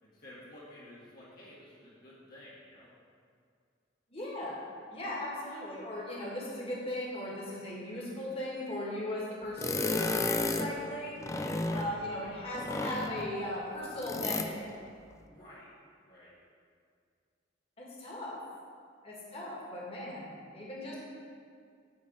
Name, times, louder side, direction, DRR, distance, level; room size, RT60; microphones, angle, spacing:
voice 1, 0.0-2.9 11.5-11.9 15.3-15.7 16.0-16.4, left 1 dB, 50° left, -8 dB, 1.7 m, -52 dB
voice 2, 4.1-14.7 17.8-18.3 19.0-21.0, left 1 dB, 30° left, -5 dB, 2.0 m, -38 dB
sound 1, 9.6-10.7 11.2-11.9 12.5-13.3 14.0-14.5, left 2 dB, 15° left, 0.4 m, -32 dB
9.5 x 4.3 x 7.4 m, 2.2 s
head